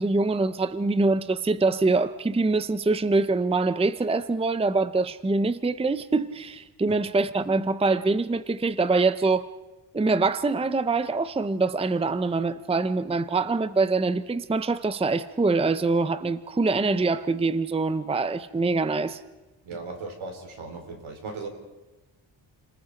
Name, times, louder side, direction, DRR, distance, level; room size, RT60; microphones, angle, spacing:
voice 1, 0.0-9.5 9.9-19.2, right 3 dB, 10° right, 0.7 m, -24 dB
voice 2, 19.6-21.5, right 3 dB, 75° right, 4.8 m, -37 dB
29.0 x 20.0 x 5.1 m
cardioid pair, 100°, 48 cm